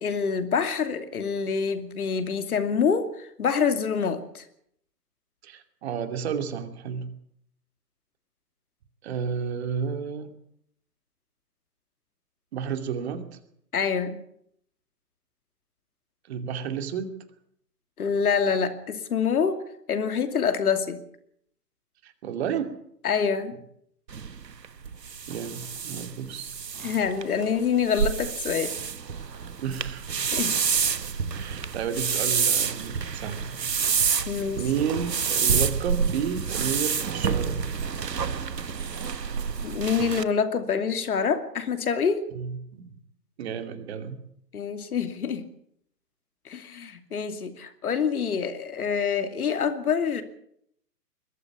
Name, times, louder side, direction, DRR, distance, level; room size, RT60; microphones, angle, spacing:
voice 1, 0.0-4.4 13.7-14.2 18.0-19.6 19.9-21.0 23.0-23.6 26.8-28.8 30.3-30.6 34.3-34.6 39.6-42.2 44.5-45.4 46.5-50.2, left 6 dB, 60° left, 9 dB, 2.7 m, -26 dB
voice 2, 5.4-7.1 9.0-10.3 12.5-13.2 16.3-17.2 22.0-22.7 25.3-26.5 29.6-30.6 31.3-33.7 34.6-37.6 42.3-42.9 43.4-44.2, right 7 dB, 40° right, 8 dB, 2.7 m, -31 dB
sound 1, 24.1-40.2, right 6 dB, 80° right, 1.4 m, -28 dB
22.0 x 14.0 x 8.7 m, 0.71 s
figure-of-eight pair, 135°, 49 cm